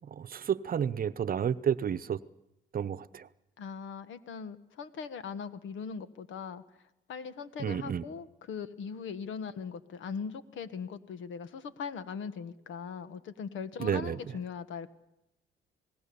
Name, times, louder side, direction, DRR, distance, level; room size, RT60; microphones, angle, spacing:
voice 1, 0.0-2.2 2.7-3.3 7.6-8.0 13.8-14.2, right 8 dB, 45° right, 12 dB, 0.8 m, -31 dB
voice 2, 3.6-6.6 7.1-14.9, left 6 dB, 75° left, 12 dB, 1.4 m, -40 dB
28.0 x 19.5 x 7.0 m, 0.88 s
cardioid pair, 90°, 20 cm